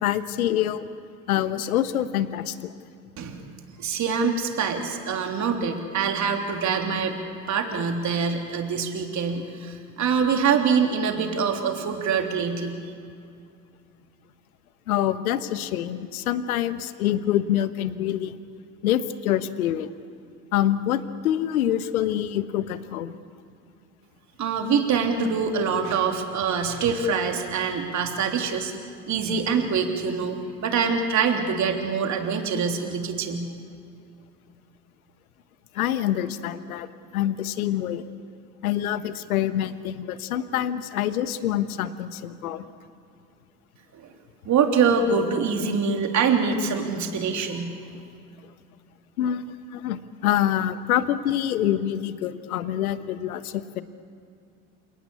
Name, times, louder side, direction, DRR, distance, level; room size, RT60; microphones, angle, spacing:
voice 1, 0.0-0.9 1.3-2.7 14.9-18.4 18.8-19.9 20.5-23.2 35.7-36.9 37.1-38.0 38.6-42.7 49.2-53.8, left 11 dB, 70° left, 13 dB, 1.3 m, -26 dB
voice 2, 3.8-7.2 7.5-12.8 24.4-33.5 43.9-44.0 44.4-47.7, right 5 dB, 40° right, 3 dB, 3.4 m, -24 dB
28.5 x 18.5 x 8.5 m, 2.4 s
figure-of-eight pair, 70°, 45 cm